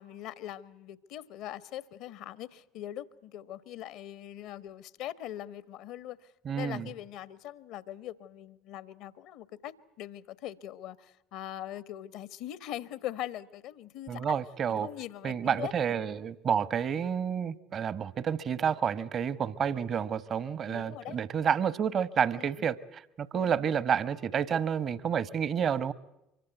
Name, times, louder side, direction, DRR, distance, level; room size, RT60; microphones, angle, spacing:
voice 1, 0.0-14.4 14.7-15.7 20.7-21.2 22.4-22.5 23.4-23.6, left 12 dB, 65° left, 1.2 m, -41 dB
voice 2, 6.4-6.9 14.1-14.9 15.2-25.9, right 7 dB, 45° right, 1.2 m, -30 dB
25.0 x 23.5 x 8.2 m
figure-of-eight pair, 55°, 0 cm